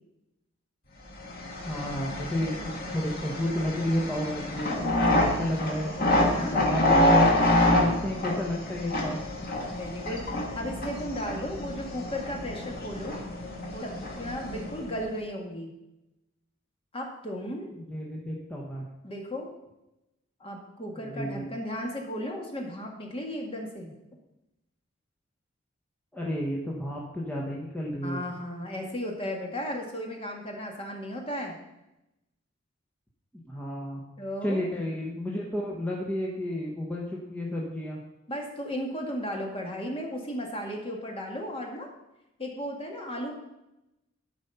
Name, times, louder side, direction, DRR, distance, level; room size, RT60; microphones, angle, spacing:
sound 1, 1.2-15.1, left 1 dB, 50° left, 1.9 m, -27 dB
voice 1, 1.6-6.1 6.3-7.3 7.8-9.2 17.7-18.9 20.9-21.4 26.1-28.4 33.5-34.0 34.4-38.0, left 1 dB, 10° left, -4 dB, 1.3 m, -32 dB
voice 2, 6.2-6.6 9.7-13.2 13.7-15.7 16.9-17.7 19.0-19.5 20.4-23.9 28.0-31.6 34.2-34.7 38.3-41.9 42.4-43.3, equal, 30° left, 1 dB, 1.9 m, -35 dB
12.0 x 5.3 x 5.7 m, 0.92 s
head